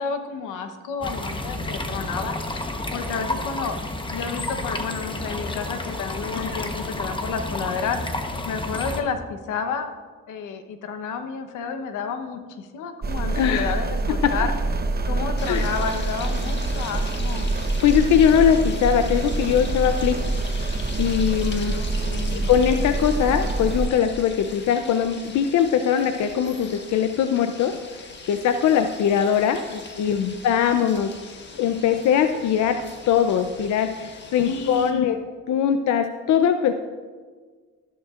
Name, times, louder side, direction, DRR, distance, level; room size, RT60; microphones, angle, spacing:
voice 1, 0.0-2.4 2.9-3.8 4.1-8.0 8.5-9.9 10.3-14.5 15.0-17.5 21.6-22.5 29.7-30.3 34.4-35.2, left 6 dB, 90° left, 7 dB, 1.0 m, -31 dB
sound 1, 1.0-9.0, left 1 dB, 15° left, 1.0 m, -30 dB
sound 2, 13.0-23.9, right 2 dB, 30° right, 0.9 m, -26 dB
voice 2, 13.3-13.7 14.1-14.5 15.5-15.7 17.8-20.2 21.0-21.8 22.3-27.7 28.0-29.6 30.0-32.8 33.1-35.2 35.5-36.7, left 8 dB, 70° left, 7 dB, 0.6 m, -21 dB
sound 3, 15.4-34.9, left 3 dB, 35° left, 1.5 m, -41 dB
14.0 x 11.5 x 2.5 m, 1.5 s
cardioid pair, 90°, 30 cm